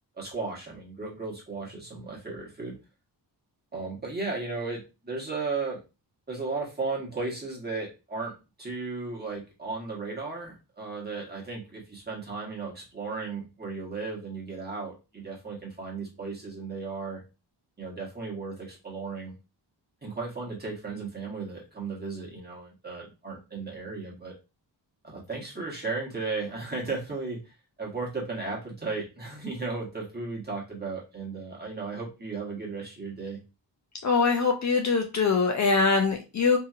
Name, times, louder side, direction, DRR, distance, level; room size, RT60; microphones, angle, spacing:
voice 1, 0.2-2.8 3.7-5.8 6.3-8.3 8.6-17.2 17.8-19.3 20.0-24.3 25.0-33.4, right 3 dB, 25° right, -3 dB, 1.3 m, -35 dB
voice 2, 34.0-36.6, left 4 dB, 45° left, 4 dB, 0.5 m, -23 dB
2.8 x 2.7 x 2.3 m, 0.28 s
wide cardioid pair, 105°, 42 cm